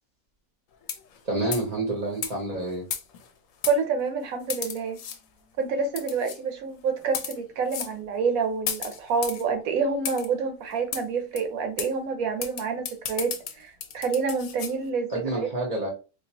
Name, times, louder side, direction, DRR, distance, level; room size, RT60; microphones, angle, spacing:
sound 1, 0.8-1.2 1.5-1.7 2.2-2.3 2.9-3.3 3.6-3.8 4.5-5.2 6.0-6.4 7.0-7.4 7.7-7.9 8.7-9.4 10.0-10.3 10.9-11.0 11.4-11.5 11.8-11.9 12.4-14.7, left 8 dB, 65° left, 0.9 m, -33 dB
voice 1, 1.2-2.8 15.1-15.9, right 2 dB, 30° right, 0.8 m, -28 dB
voice 2, 3.6-5.0 5.6-15.5, right 5 dB, 65° right, 1.2 m, -28 dB
3.8 x 2.6 x 2.9 m
omnidirectional pair, 1.6 m